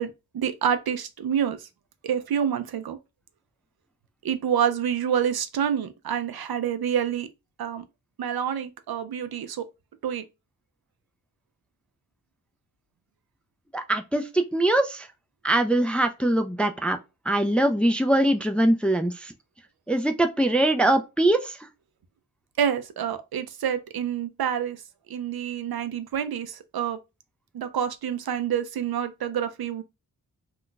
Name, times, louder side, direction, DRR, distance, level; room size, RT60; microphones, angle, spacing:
voice 1, 0.0-1.7 2.0-3.0 4.2-7.3 7.6-7.8 8.2-9.7 10.0-10.2 22.6-24.8 25.1-27.0 27.5-29.8, right 8 dB, 75° right, 0.5 m, -27 dB
voice 2, 13.7-15.1 15.4-17.0 17.3-19.3 19.9-21.7, right 1 dB, 5° left, 0.3 m, -22 dB
2.4 x 2.1 x 3.8 m
wide cardioid pair, 70°, 38 cm